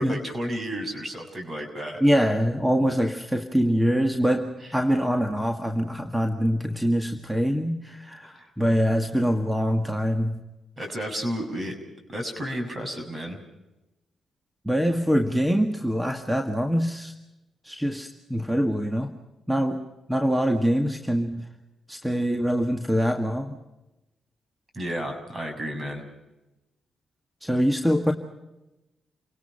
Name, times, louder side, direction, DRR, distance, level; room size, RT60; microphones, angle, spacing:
voice 1, 0.0-2.0 4.6-4.7 8.3-8.5 10.8-11.7 12.1-13.4 24.7-26.0, equal, 40° right, 5 dB, 6.7 m, -32 dB
voice 2, 2.0-10.4 14.7-17.1 17.6-19.1 19.5-21.5 21.9-23.6 27.4-28.1, equal, 5° right, 5 dB, 1.8 m, -24 dB
29.5 x 18.0 x 5.7 m, 0.99 s
supercardioid pair, 60°, 0 cm